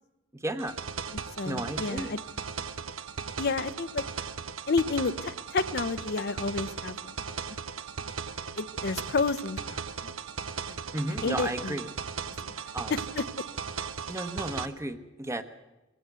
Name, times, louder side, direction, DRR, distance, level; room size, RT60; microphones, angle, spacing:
voice 1, 0.3-0.8 1.4-2.1 10.9-11.9 12.7-13.0 14.1-15.4, right 1 dB, 15° right, 10 dB, 0.9 m, -33 dB
sound 1, 0.6-14.7, right 6 dB, 90° right, 0.9 m, -37 dB
voice 2, 1.4-2.2 3.4-4.0 4.7-7.4 8.6-9.8 10.7-10.8 11.2-11.8 12.4-12.5 12.9-13.2, left 4 dB, 55° left, 12 dB, 0.6 m, -30 dB
22.0 x 15.5 x 8.1 m, 1.0 s
head